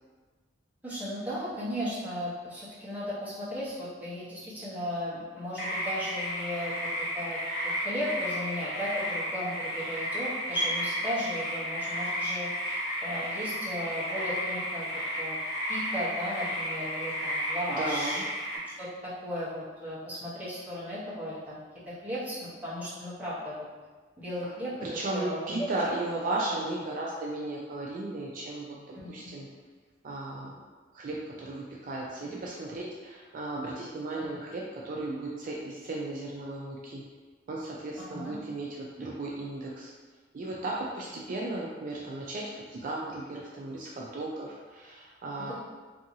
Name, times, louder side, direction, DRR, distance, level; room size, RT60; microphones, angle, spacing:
voice 1, 0.8-6.9 7.1-7.4 7.6-14.9 15.2-15.4 15.7-18.2 18.8-21.6 21.9-23.7 24.2-24.7 25.1-25.7 28.9-29.3 34.1-34.2 38.1-38.4, equal, 10° right, -10 dB, 0.8 m, -35 dB
sound 1, 5.6-18.6, equal, 55° left, 0.8 m, -33 dB
voice 2, 17.7-18.2 24.8-29.5 30.0-30.5 30.9-37.0 37.5-39.9 40.3-45.5, right 2 dB, 45° right, -3 dB, 0.3 m, -35 dB
2.7 x 2.6 x 2.6 m, 1.4 s
head